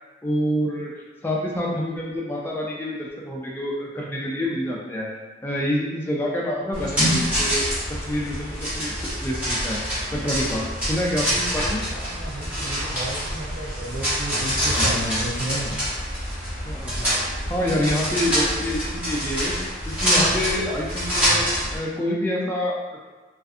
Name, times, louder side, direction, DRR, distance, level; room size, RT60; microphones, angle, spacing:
voice 1, 0.2-5.1 5.4-9.8 10.1-11.8 16.7-17.1 17.5-19.5 19.9-21.4 21.7-22.7, left 1 dB, 10° left, -4 dB, 0.3 m, -27 dB
sound 1, 6.7-21.8, equal, 5° right, 0.9 m, -26 dB
voice 2, 11.8-15.8, right 1 dB, 40° right, -4 dB, 0.5 m, -32 dB
2.5 x 2.4 x 2.4 m, 1.3 s
head